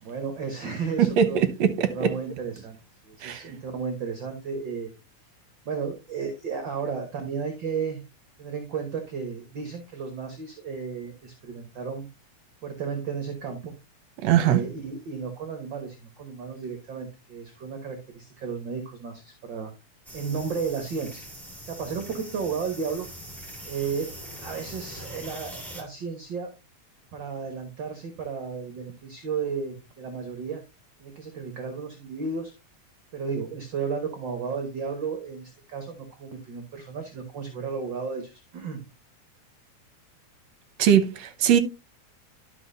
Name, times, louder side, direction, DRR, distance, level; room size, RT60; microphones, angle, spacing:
voice 1, 0.0-1.4 1.9-2.8 3.0-4.9 5.6-8.0 8.4-12.1 12.6-13.7 14.4-19.7 20.1-21.2 21.7-23.1 23.6-24.1 24.4-26.5 27.1-30.6 31.0-32.5 33.1-38.8, right 5 dB, 50° right, 1.6 m, -33 dB
voice 2, 1.0-2.1 3.2-3.4 14.2-14.6 40.8-41.6, right 9 dB, 70° right, 1.9 m, -21 dB
sound 1, 20.0-25.8, equal, ahead, 1.9 m, -42 dB
12.0 x 6.0 x 2.7 m
omnidirectional pair, 3.5 m